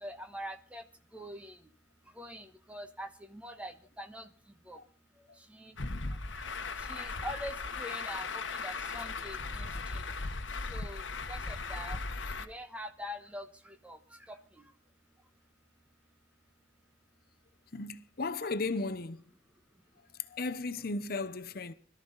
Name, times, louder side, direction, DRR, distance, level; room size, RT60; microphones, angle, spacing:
voice 1, 0.0-0.8 1.1-1.6 2.2-4.3 4.7-4.8 5.5-5.7 6.3-6.5 6.8-10.0 10.7-11.0 11.3-12.0 12.4-14.0 14.3-14.6, equal, 5° right, 1.2 m, -44 dB
Truck, 5.8-12.5, left 3 dB, 75° left, 1.2 m, -37 dB
voice 2, 17.7-19.2 20.3-21.7, left 3 dB, 50° left, 0.8 m, -35 dB
21.5 x 13.0 x 4.0 m
head